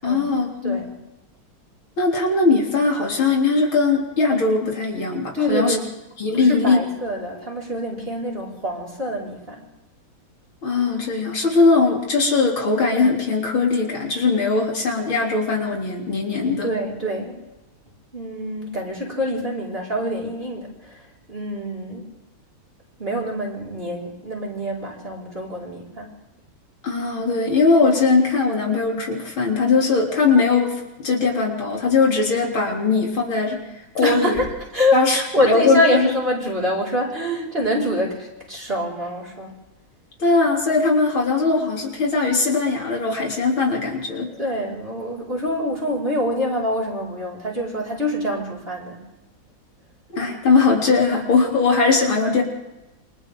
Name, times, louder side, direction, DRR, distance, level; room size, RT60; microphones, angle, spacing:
voice 1, 0.0-0.8 2.0-5.8 6.2-6.8 10.6-16.7 26.8-34.4 34.9-36.1 40.2-44.3 50.1-52.4, left 4 dB, 70° left, -1 dB, 4.2 m, -20 dB
voice 2, 0.6-1.0 5.3-5.9 6.3-9.6 16.6-17.5 18.1-22.1 23.0-26.1 34.0-34.5 34.7-39.5 44.4-49.1, left 1 dB, 25° right, -3 dB, 5.5 m, -25 dB
28.5 x 25.0 x 3.9 m, 0.99 s
omnidirectional pair, 2.3 m